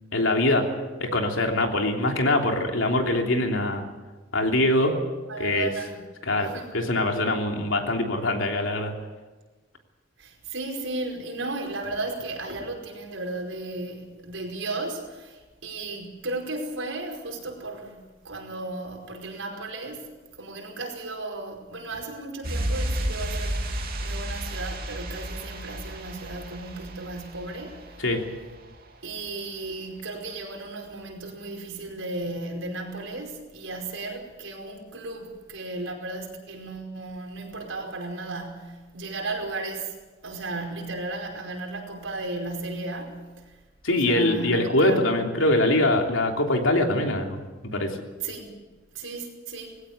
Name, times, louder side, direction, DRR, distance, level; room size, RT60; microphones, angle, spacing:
voice 1, 0.1-0.6 1.0-3.8 4.3-4.9 5.4-5.7 6.2-8.9 28.0-28.2 43.8-47.4 47.6-48.0, left 1 dB, 85° left, 3.2 m, -23 dB
voice 2, 5.3-6.0 6.4-6.7 10.2-20.1 20.4-23.7 24.0-28.0 29.0-39.9 40.2-43.5 43.9-45.1 48.2-49.7, right 2 dB, 80° right, 5.1 m, -35 dB
sound 1, 22.4-28.9 29.2-29.3, right 1 dB, 50° right, 2.9 m, -32 dB
20.0 x 17.0 x 8.5 m
head